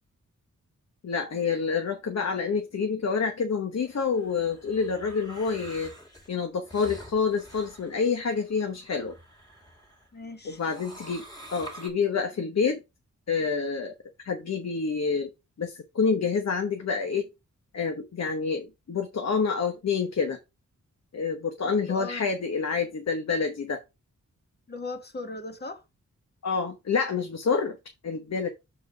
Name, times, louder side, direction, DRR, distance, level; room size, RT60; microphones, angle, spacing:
voice 1, 1.0-5.9 6.3-9.1 10.4-11.2 11.5-12.8 13.3-13.9 14.2-15.3 15.6-17.3 17.7-20.4 21.1-23.8 26.4-27.8 28.0-28.5, left 5 dB, 60° left, 1.0 m, -28 dB
sound 1, 3.8-10.1 10.5-11.9, right 1 dB, 10° left, 2.2 m, -47 dB
voice 2, 10.1-10.6 21.6-22.3 24.7-25.8, left 3 dB, 35° left, 1.3 m, -38 dB
6.9 x 4.3 x 4.8 m
wide cardioid pair, 165°, 31 cm